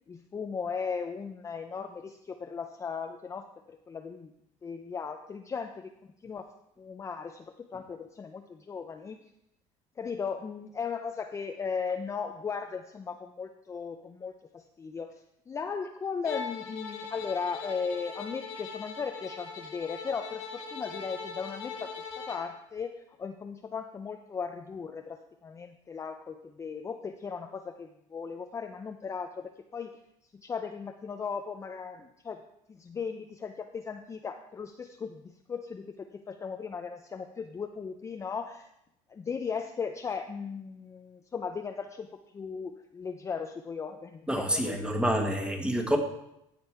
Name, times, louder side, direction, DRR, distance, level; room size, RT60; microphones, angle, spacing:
voice 1, 0.1-4.3 4.6-5.9 6.2-6.5 6.8-9.2 10.0-29.9 30.3-32.4 32.7-38.7 39.1-45.0, left 5 dB, 20° left, 5 dB, 0.5 m, -37 dB
Bowed string instrument, 16.2-22.5, left 5 dB, 75° left, 2.2 m, -40 dB
voice 2, 44.3-46.0, equal, 5° right, 4 dB, 1.4 m, -27 dB
15.5 x 5.3 x 4.6 m, 0.82 s
cardioid pair, 130°, 14 cm